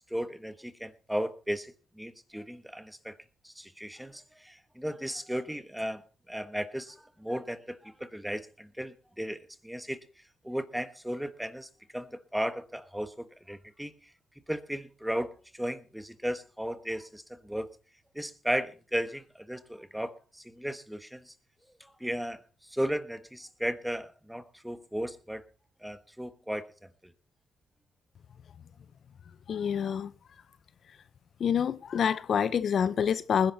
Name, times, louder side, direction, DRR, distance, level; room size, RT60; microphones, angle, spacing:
voice 1, 0.1-3.2 3.4-10.0 10.4-14.1 14.5-17.7 18.1-21.3 21.8-25.4 25.8-27.1, equal, 5° right, 1.3 m, -35 dB
voice 2, 29.5-30.1 31.4-33.5, left 7 dB, 55° left, 0.6 m, -27 dB
20.0 x 10.5 x 4.0 m
cardioid pair, 90°, 0 cm